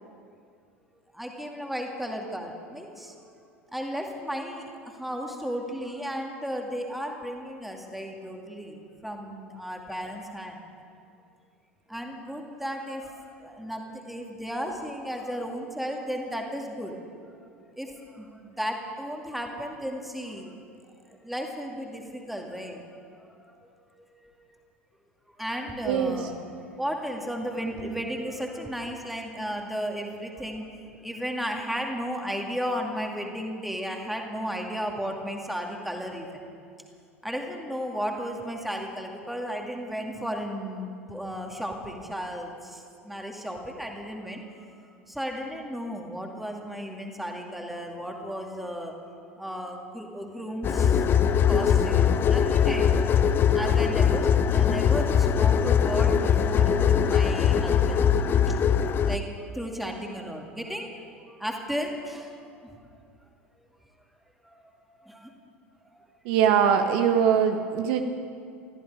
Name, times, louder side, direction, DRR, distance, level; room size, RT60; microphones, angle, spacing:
voice 1, 1.1-3.1 3.7-10.6 11.9-17.0 17.6-20.6 21.1-23.6 24.0-24.6 25.4-26.3 26.8-30.7 30.9-36.4 37.2-51.1 51.5-53.1 53.5-58.1 58.5-58.6 59.0-62.8 64.4-64.6 64.9-65.3 65.9-66.1, equal, ahead, 2 dB, 2.3 m, -34 dB
voice 2, 25.8-26.2 66.2-68.0, right 8 dB, 55° right, 6 dB, 1.0 m, -22 dB
sound 1, 50.6-59.2, left 8 dB, 30° left, 0.7 m, -21 dB
21.0 x 14.0 x 4.9 m, 2.4 s
figure-of-eight pair, 75°, 7 cm